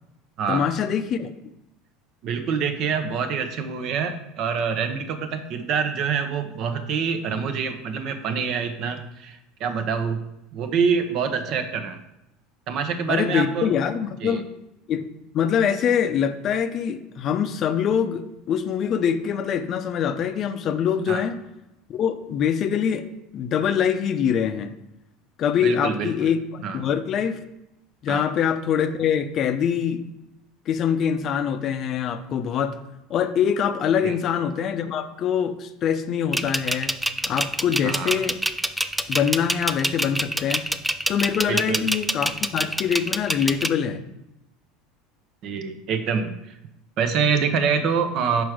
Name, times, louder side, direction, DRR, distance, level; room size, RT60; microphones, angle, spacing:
voice 1, 0.5-1.3 13.1-14.5 14.9-15.1 15.3-21.4 21.9-23.0 23.3-24.7 25.4-27.4 28.0-30.0 30.7-32.8 33.1-36.9 37.3-38.4 39.1-40.6 41.1-44.0, left 8 dB, 40° left, 9 dB, 0.6 m, -24 dB
voice 2, 2.2-10.2 10.5-12.0 12.7-13.7 14.2-14.4 21.1-21.2 25.6-26.3 26.6-26.8 28.1-28.3 34.0-34.2 37.8-38.2 41.5-41.9 45.4-46.6 47.0-48.4, right 6 dB, 50° right, 9 dB, 0.8 m, -26 dB
sound 1, 36.3-43.7, right 1 dB, 5° right, 0.3 m, -25 dB
6.1 x 4.7 x 4.9 m, 0.87 s
supercardioid pair, 125°, 0 cm